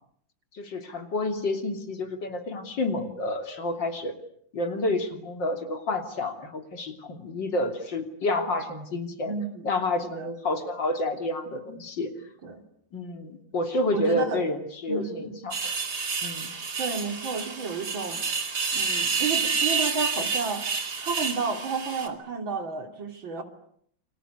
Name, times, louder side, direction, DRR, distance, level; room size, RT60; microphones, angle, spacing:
voice 1, 0.5-4.1 4.5-9.3 9.6-12.1 12.9-15.6 16.2-16.5, left 2 dB, 70° left, 6 dB, 3.6 m, -29 dB
voice 2, 9.3-9.7 10.0-10.3 12.4-12.6 13.9-14.4 14.9-15.4 16.8-18.2 18.7-20.7 21.0-23.4, right 4 dB, 85° right, 6 dB, 3.8 m, -31 dB
sound 1, 15.5-22.1, right 5 dB, 60° right, 3.4 m, -29 dB
28.5 x 25.5 x 8.2 m, 0.68 s
omnidirectional pair, 2.1 m